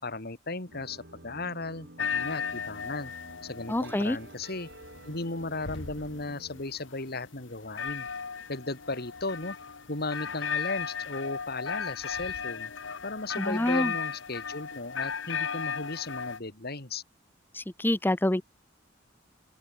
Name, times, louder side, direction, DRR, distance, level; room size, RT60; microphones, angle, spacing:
voice 1, 0.0-3.1 3.4-4.7 5.0-8.1 8.5-9.6 9.9-12.7 13.0-17.0, left 3 dB, 55° left, 3.1 m, -36 dB
sound 1, 0.7-6.6, right 1 dB, 60° right, 4.4 m, -50 dB
sound 2, 2.0-16.4, left 6 dB, 80° left, 1.5 m, -36 dB
voice 2, 3.7-4.2 13.4-13.9 17.5-18.4, left 1 dB, 10° left, 0.7 m, -27 dB
open air
head